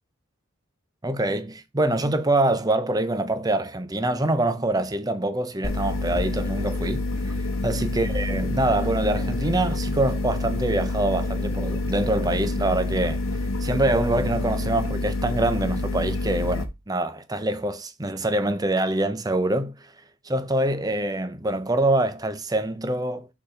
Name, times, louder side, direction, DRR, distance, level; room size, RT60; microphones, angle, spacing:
voice 1, 1.0-7.4 7.6-13.2 13.6-19.8 20.2-23.3, right 1 dB, 20° right, 0.6 m, -25 dB
sound 1, 5.6-16.6, left 2 dB, 75° left, 1.1 m, -27 dB
6.0 x 4.2 x 5.7 m
head